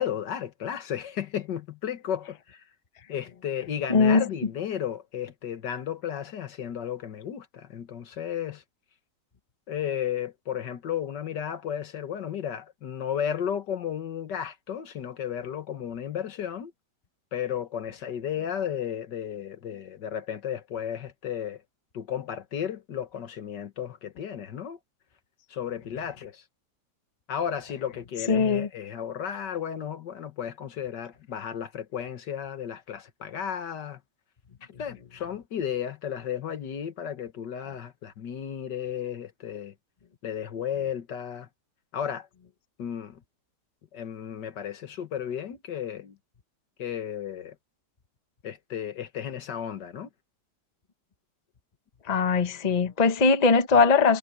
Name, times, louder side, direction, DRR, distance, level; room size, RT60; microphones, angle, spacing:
voice 1, 0.0-2.6 3.1-8.6 9.7-16.7 17.3-21.6 21.9-24.8 25.5-26.4 27.3-34.0 34.8-39.7 40.2-41.5 41.9-42.3 42.8-43.2 43.9-46.2 46.8-47.6 48.4-50.1, left 9 dB, 80° left, 2.0 m, -33 dB
voice 2, 3.9-4.2 28.3-28.7 52.1-54.2, left 4 dB, 30° left, 1.0 m, -20 dB
omnidirectional pair, 1.8 m